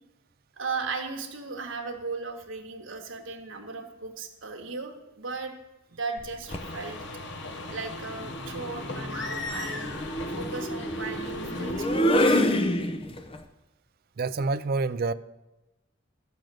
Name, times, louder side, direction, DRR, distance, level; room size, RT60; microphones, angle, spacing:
voice 1, 0.6-5.5 6.0-7.0 7.7-12.4, right 4 dB, 65° right, 1.6 m, -36 dB
sound 1, 6.2-6.7 8.1-13.4, equal, 25° left, 0.7 m, -27 dB
sound 2, 6.5-12.0, left 2 dB, 60° left, 1.2 m, -38 dB
voice 2, 14.2-15.1, right 3 dB, 45° right, 0.4 m, -27 dB
12.5 x 7.0 x 7.6 m
head